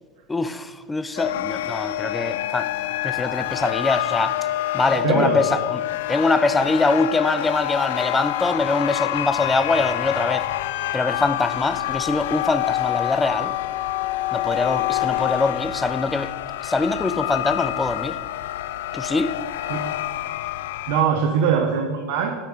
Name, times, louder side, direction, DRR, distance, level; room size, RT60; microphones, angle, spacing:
voice 1, 0.3-2.7 3.0-4.4 4.7-5.8 6.1-10.5 10.9-13.5 14.3-16.3 16.6-18.2 18.9-19.4, left 3 dB, 15° left, 12 dB, 0.5 m, -23 dB
sound 1, 1.2-21.0, left 14 dB, 80° left, 0.3 m, -26 dB
voice 2, 5.0-5.4 19.7-19.9 20.9-22.3, right 7 dB, 70° right, 3 dB, 0.8 m, -21 dB
7.5 x 5.4 x 5.0 m, 1.4 s
hypercardioid pair, 105°, 0 cm